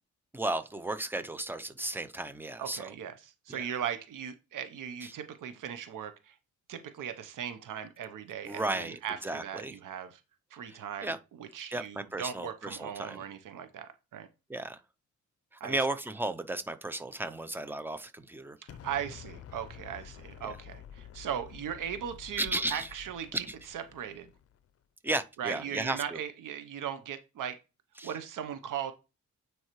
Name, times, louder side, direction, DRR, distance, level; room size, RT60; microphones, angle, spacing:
voice 1, 0.3-2.9 3.5-3.7 5.0-5.1 8.4-9.7 10.7-11.2 11.7-13.2 14.5-14.8 15.5-18.6 22.4-22.9 23.5-23.6 25.0-26.2 28.0-28.1, right 2 dB, 5° right, 0.5 m, -34 dB
voice 2, 2.6-6.4 6.7-10.2 10.5-14.3 15.6-15.8 18.7-23.3 23.7-24.3 25.4-27.6 28.0-28.9, right 9 dB, 80° right, 0.8 m, -38 dB
Explosion, 18.7-24.7, left 9 dB, 50° left, 0.5 m, -50 dB
9.2 x 4.6 x 3.0 m
wide cardioid pair, 130°, 31 cm